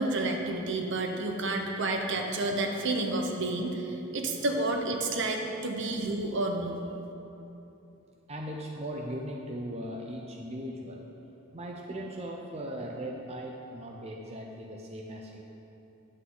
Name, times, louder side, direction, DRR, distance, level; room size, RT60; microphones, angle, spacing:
voice 1, 0.0-6.8, right 2 dB, 60° right, 3 dB, 0.9 m, -30 dB
voice 2, 8.3-11.0 11.5-15.4, equal, 30° right, 0 dB, 0.6 m, -38 dB
9.7 x 8.4 x 3.9 m, 2.9 s
head